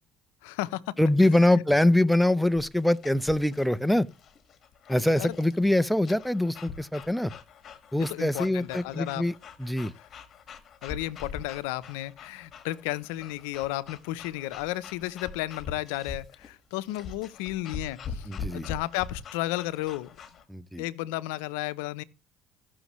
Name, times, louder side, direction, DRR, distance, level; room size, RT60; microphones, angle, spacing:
voice 1, 0.4-1.0 1.5-1.6 5.2-5.3 8.0-9.2 10.8-20.1 20.8-22.0, left 17 dB, 90° left, 0.6 m, -33 dB
voice 2, 1.0-4.1 4.9-7.3 7.9-9.3 9.6-9.9 18.3-18.7 20.5-20.8, left 1 dB, ahead, 0.6 m, -24 dB
sound 1, 2.5-20.4, left 5 dB, 50° left, 1.5 m, -43 dB
15.0 x 6.3 x 3.0 m
supercardioid pair, 80°, 0 cm